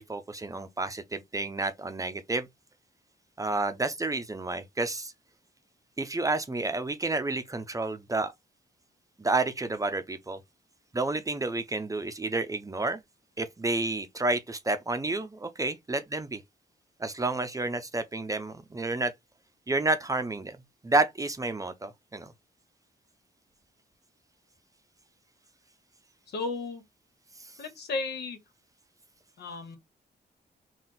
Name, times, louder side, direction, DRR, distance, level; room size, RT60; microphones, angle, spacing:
voice 1, 0.0-2.5 3.4-5.1 6.0-8.3 9.2-10.4 10.9-13.0 13.4-16.4 17.0-19.1 19.7-20.6 20.8-22.3, right 2 dB, 20° right, 0.6 m, -30 dB
voice 2, 26.3-26.8 27.6-28.4 29.4-29.8, left 3 dB, 85° left, 1.5 m, -34 dB
4.2 x 2.4 x 3.8 m
cardioid pair, 95°, 17 cm